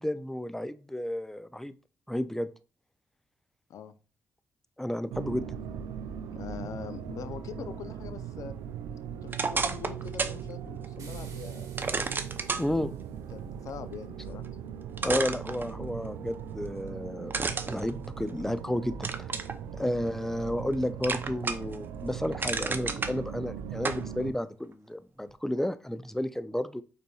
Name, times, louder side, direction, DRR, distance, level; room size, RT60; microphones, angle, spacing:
voice 1, 0.0-1.7 2.1-2.5 4.8-5.5 12.6-12.9 15.0-17.3 17.7-19.3 19.8-26.8, left 1 dB, 5° left, 13 dB, 0.4 m, -32 dB
sound 1, 5.1-24.3, right 8 dB, 90° right, 0.3 m, -40 dB
voice 2, 6.3-8.5 9.2-11.7 13.3-14.5, left 8 dB, 70° left, 12 dB, 0.5 m, -43 dB
sound 2, 9.3-10.4 10.8-10.9 11.8-12.7 14.4-14.5 15.0-16.1 17.3-18.6 19.0-19.6 20.1-20.7 21.0-21.8 22.1-23.1 23.8-24.0, right 4 dB, 35° right, 0.6 m, -31 dB
sound 3, 11.0-13.4, right 5 dB, 70° right, 1.3 m, -55 dB
5.2 x 4.2 x 2.3 m, 0.35 s
supercardioid pair, 55°, 6 cm